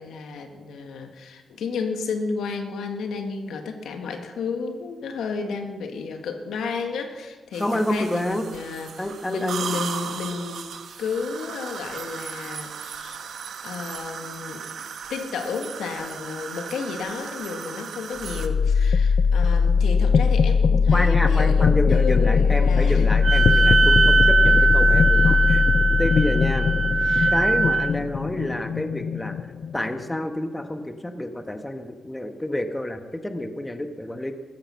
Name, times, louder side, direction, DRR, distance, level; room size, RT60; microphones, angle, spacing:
voice 1, 0.0-10.7 11.0-13.4 13.6-14.7 15.1-23.1 27.0-27.3, left 4 dB, 85° left, 5 dB, 1.8 m, -32 dB
sound 1, 7.5-18.5, right 7 dB, 75° right, 1.3 m, -36 dB
voice 2, 7.6-8.4 9.0-9.8 20.9-25.6 26.0-26.7 27.3-29.4 29.7-34.3, left 1 dB, 15° left, 7 dB, 1.3 m, -28 dB
sound 2, 18.2-30.1, left 5 dB, 65° left, 0.6 m, -20 dB
Wind instrument woodwind instrument, 23.2-27.9, right 3 dB, 35° right, 0.6 m, -20 dB
14.5 x 14.0 x 5.8 m, 1.3 s
cardioid pair, 80°, 0 cm